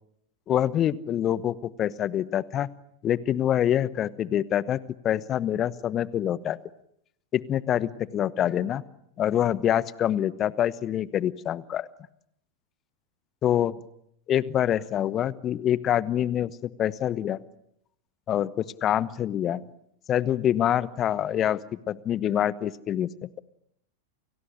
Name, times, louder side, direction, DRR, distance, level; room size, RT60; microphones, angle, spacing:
voice 1, 0.5-2.7 3.0-6.6 7.3-8.8 9.2-11.9 13.4-13.7 14.3-17.4 18.3-19.6 20.1-21.6 21.9-23.4, left 11 dB, 30° left, 18 dB, 1.1 m, -26 dB
30.0 x 29.5 x 6.6 m, 0.75 s
figure-of-eight pair, 90°, 0 cm